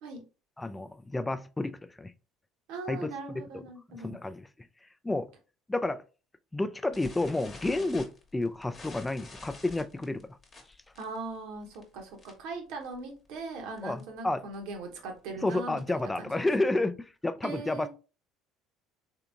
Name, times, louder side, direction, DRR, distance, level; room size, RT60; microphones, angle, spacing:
voice 1, 0.6-2.1 2.9-3.6 4.0-4.5 5.0-5.3 5.7-6.0 6.5-10.4 13.8-14.4 15.4-17.9, left 2 dB, 15° left, 0.3 m, -31 dB
voice 2, 2.7-4.2 11.0-16.7 17.4-17.9, right 3 dB, 65° right, 0.9 m, -40 dB
sound 1, 6.9-12.6 12.8-13.1 13.4-13.5 13.8-14.0 14.5-16.1, left 3 dB, 35° left, 1.0 m, -49 dB
3.7 x 3.4 x 2.3 m
figure-of-eight pair, 60°, 0 cm